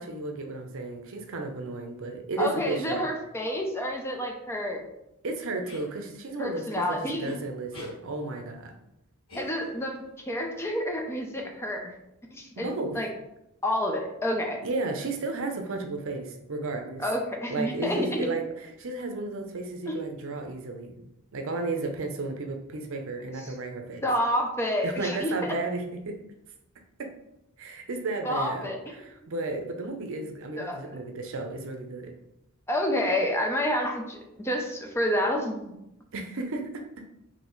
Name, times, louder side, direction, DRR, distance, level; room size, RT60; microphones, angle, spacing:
voice 1, 0.0-3.1 5.2-8.7 12.6-13.0 14.6-17.0 17.5-21.0 21.3-24.0 24.8-26.2 27.0-27.1 27.6-32.1 36.1-37.0, right 3 dB, 65° right, 4 dB, 0.6 m, -33 dB
voice 2, 2.4-4.9 6.4-7.3 9.3-11.9 12.3-12.7 12.9-13.1 13.6-14.6 17.0-18.3 19.9-20.0 23.4-23.5 24.0-25.3 28.2-28.8 30.6-30.9 32.7-35.8, left 1 dB, 10° left, 1 dB, 0.5 m, -29 dB
sound 1, 5.6-5.9 7.2-7.4 7.7-8.0 9.3-9.9, left 1 dB, 65° left, 1.6 m, -42 dB
5.3 x 2.8 x 3.1 m, 0.87 s
head